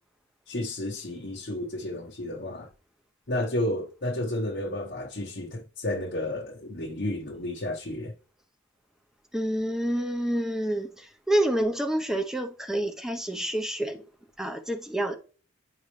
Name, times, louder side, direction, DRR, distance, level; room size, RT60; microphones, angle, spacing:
voice 1, 0.5-2.7 3.3-8.1, left 1 dB, 55° left, 1.1 m, -32 dB
voice 2, 9.3-14.0 14.4-15.1, right 1 dB, 5° right, 0.7 m, -28 dB
9.8 x 5.4 x 3.2 m
head